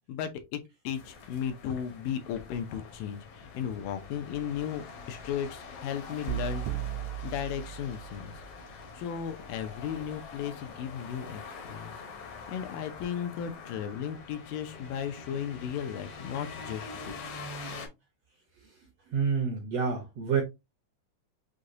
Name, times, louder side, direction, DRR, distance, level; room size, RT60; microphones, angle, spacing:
voice 1, 0.1-6.7 7.2-8.3 8.8-11.9 12.5-17.1, left 9 dB, 80° left, 2.4 m, -35 dB
sound 1, 0.9-17.9, left 4 dB, 60° left, 1.5 m, -45 dB
sound 2, 6.3-8.4, right 13 dB, 90° right, 2.3 m, -35 dB
voice 2, 19.1-20.4, right 6 dB, 70° right, 1.6 m, -28 dB
6.3 x 2.8 x 2.6 m
omnidirectional pair, 3.9 m